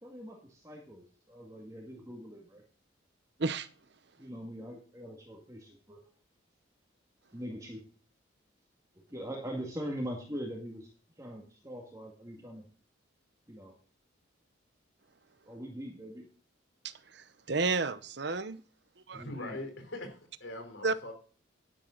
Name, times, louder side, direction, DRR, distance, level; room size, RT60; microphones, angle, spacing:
voice 1, 0.0-2.6 4.2-6.0 7.3-7.9 9.1-10.9 11.2-12.6 13.5-13.7 15.4-16.3 19.1-19.6, equal, 15° right, 2.0 m, -42 dB
voice 2, 3.4-3.7 16.8-18.6 19.1-19.2 20.8-20.9, right 3 dB, 55° right, 0.8 m, -32 dB
voice 3, 19.1-21.1, left 1 dB, 65° left, 4.0 m, -42 dB
11.0 x 10.5 x 3.9 m
head